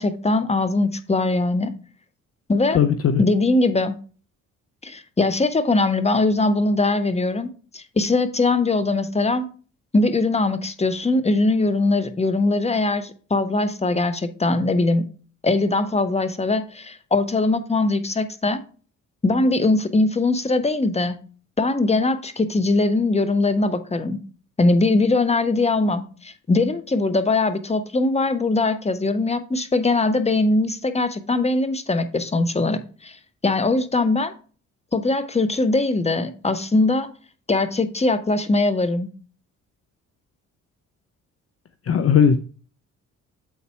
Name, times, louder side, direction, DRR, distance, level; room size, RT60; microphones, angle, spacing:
voice 1, 0.0-1.7 2.5-2.8 3.2-3.9 4.8-9.5 9.9-15.0 15.4-18.6 19.2-21.2 21.6-24.2 24.6-33.2 33.4-34.3 34.9-37.1 37.5-39.1, left 2 dB, 15° left, 1.0 m, -21 dB
voice 2, 2.7-3.2 41.9-42.4, left 7 dB, 35° left, 0.6 m, -17 dB
8.1 x 4.1 x 4.4 m
hypercardioid pair, 45°, 39 cm